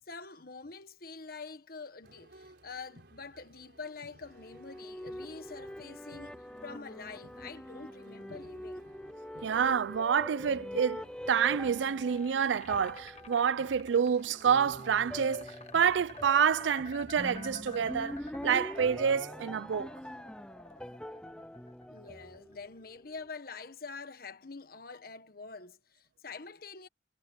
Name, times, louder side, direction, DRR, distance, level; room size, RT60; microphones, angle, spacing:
voice 1, 0.1-8.9 21.9-26.9, left 4 dB, 55° left, 1.4 m, -46 dB
sound 1, 2.0-18.8, right 1 dB, 65° right, 4.6 m, -58 dB
sound 2, 4.2-22.8, equal, 5° left, 0.4 m, -44 dB
voice 2, 9.4-18.2 18.4-19.9, right 7 dB, 85° right, 0.4 m, -28 dB
sound 3, 11.0-23.1, left 5 dB, 35° left, 1.3 m, -51 dB
head